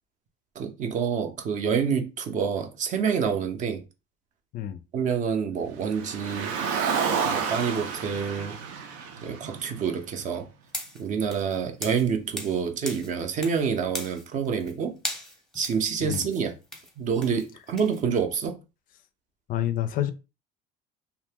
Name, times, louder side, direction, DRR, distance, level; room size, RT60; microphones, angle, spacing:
voice 1, 0.6-3.8 4.9-6.5 7.2-8.6 9.2-10.5 10.9-15.0 15.5-16.6 17.0-18.6, right 6 dB, 40° right, 0.6 m, -27 dB
Car, 5.9-10.3, right 6 dB, 90° right, 0.7 m, -30 dB
sound 1, 10.7-12.6 12.8-13.6 13.9-14.7 15.0-18.0, left 1 dB, ahead, 0.7 m, -38 dB
voice 2, 19.5-20.1, left 12 dB, 50° left, 0.4 m, -28 dB
2.8 x 2.1 x 3.3 m
cardioid pair, 140°, 19 cm